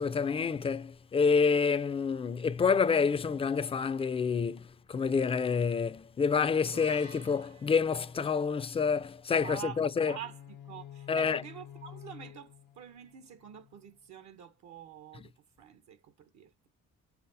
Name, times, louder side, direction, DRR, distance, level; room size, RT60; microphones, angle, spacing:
voice 1, 0.0-10.2 11.1-11.4, left 5 dB, 20° left, 0.3 m, -28 dB
sound 1, 6.7-10.2, right 5 dB, 90° right, 2.4 m, -56 dB
voice 2, 9.4-15.3 15.6-16.7, right 9 dB, 65° right, 0.7 m, -47 dB
sound 2, 9.9-13.9, left 10 dB, 85° left, 0.8 m, -50 dB
5.7 x 2.0 x 2.6 m
cardioid pair, 90°, 30 cm